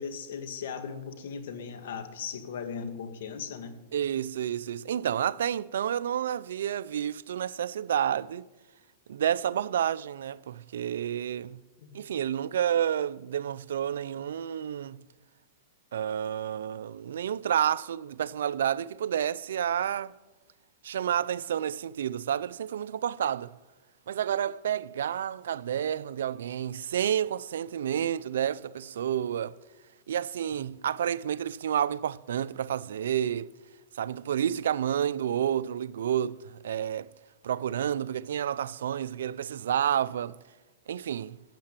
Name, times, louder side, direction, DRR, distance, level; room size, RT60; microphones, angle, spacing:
voice 1, 0.0-3.8 11.8-12.0, left 6 dB, 70° left, 1.9 m, -38 dB
voice 2, 3.9-8.5 9.1-11.6 11.9-15.0 15.9-20.1 20.8-23.5 24.1-29.6 30.1-33.5 33.9-37.1 37.4-40.4 40.9-41.4, right 9 dB, 80° right, 0.5 m, -30 dB
14.5 x 7.6 x 8.9 m
hypercardioid pair, 135°, 0 cm